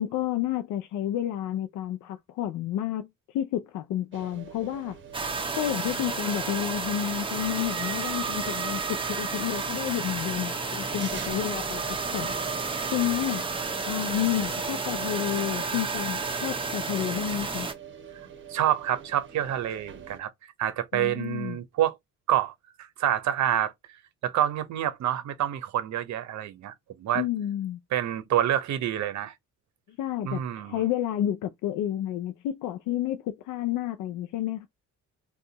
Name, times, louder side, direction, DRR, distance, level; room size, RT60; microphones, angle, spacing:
voice 1, 0.0-5.0 5.6-12.3 12.9-13.4 13.9-17.7 20.9-21.6 27.1-27.8 30.0-34.7, left 12 dB, 85° left, 0.5 m, -30 dB
sound 1, 4.1-20.2, right 8 dB, 40° right, 0.9 m, -45 dB
sound 2, 5.1-17.7, right 4 dB, 15° right, 0.7 m, -31 dB
voice 2, 18.5-22.0 22.3-22.5 22.8-23.7 24.2-27.2 27.9-29.3 30.2-30.8, right 11 dB, 65° right, 0.7 m, -27 dB
2.7 x 2.3 x 3.8 m
cardioid pair, 90°, 30 cm